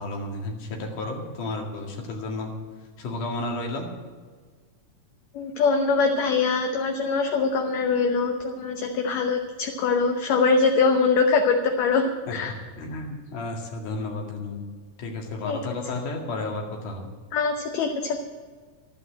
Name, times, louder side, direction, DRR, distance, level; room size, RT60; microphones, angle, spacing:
voice 1, 0.0-2.5 3.0-3.9 12.3-14.6 15.0-17.1, left 2 dB, 85° left, 1 dB, 3.7 m, -32 dB
voice 2, 5.3-12.5 15.4-15.6 17.3-18.2, left 4 dB, 70° left, 4 dB, 2.1 m, -23 dB
12.5 x 11.0 x 7.6 m, 1.5 s
omnidirectional pair, 3.5 m